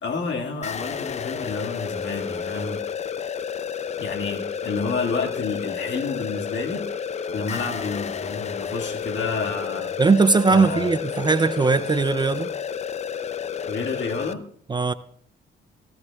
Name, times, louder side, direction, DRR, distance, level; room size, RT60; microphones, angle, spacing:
voice 1, 0.0-2.8 4.0-6.9 7.3-9.9 10.5-10.9 13.7-14.4, left 4 dB, 65° left, 3 dB, 1.7 m, -29 dB
sound 1, 0.6-14.3, left 7 dB, 35° left, 0.5 m, -31 dB
voice 2, 10.0-12.5 14.7-14.9, right 4 dB, 20° right, 13 dB, 0.4 m, -19 dB
19.0 x 16.0 x 2.3 m, 0.63 s
cardioid pair, 90°, 20 cm